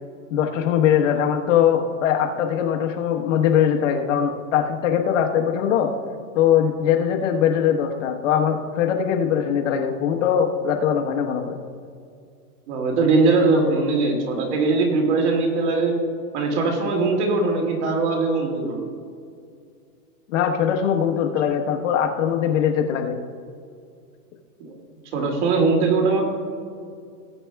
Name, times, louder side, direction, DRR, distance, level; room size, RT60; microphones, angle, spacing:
voice 1, 0.3-5.9 6.3-11.6 20.3-23.2, left 8 dB, 50° left, 3 dB, 1.2 m, -21 dB
voice 2, 12.7-16.0 16.3-18.8 24.6-24.8 25.1-26.2, right 3 dB, 45° right, 1 dB, 2.4 m, -21 dB
19.0 x 8.2 x 2.3 m, 2.3 s
hypercardioid pair, 155°, 47 cm